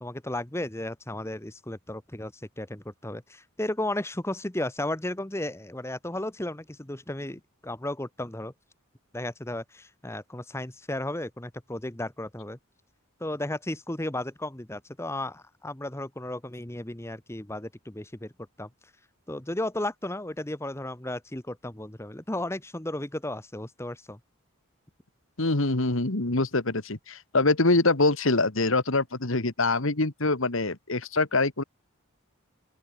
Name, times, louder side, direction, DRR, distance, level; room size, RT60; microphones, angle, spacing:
voice 1, 0.0-8.5 9.1-12.6 13.2-18.3 18.6-18.7 19.3-24.2, left 1 dB, 10° left, 1.1 m, -34 dB
voice 2, 25.4-31.6, left 2 dB, 65° left, 1.8 m, -24 dB
open air
head